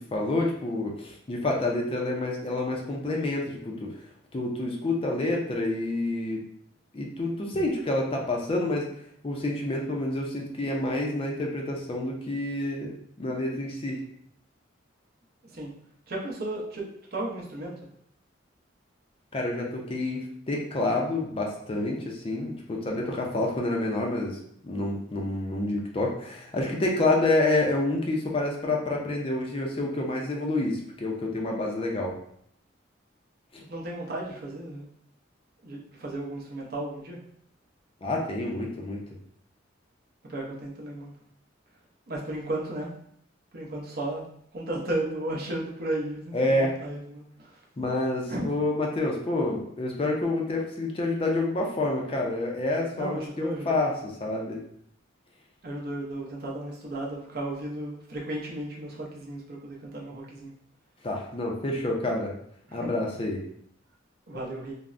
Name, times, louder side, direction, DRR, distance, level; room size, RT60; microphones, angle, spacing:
voice 1, 0.1-3.9 4.3-6.4 6.9-8.9 9.2-12.9 13.2-14.0 19.3-32.1 33.5-33.6 38.0-39.0 46.3-46.8 47.8-54.6 61.0-62.3 62.7-63.4, left 2 dB, 30° left, -1 dB, 0.4 m, -28 dB
voice 2, 16.1-17.7 33.7-34.9 35.6-37.2 40.3-41.2 42.1-42.9 43.5-44.2 44.5-47.6 48.3-48.5 53.0-53.7 55.6-60.5 62.7-62.9 64.3-64.7, right 1 dB, 50° right, -2 dB, 0.6 m, -34 dB
3.4 x 2.0 x 2.5 m, 0.68 s
head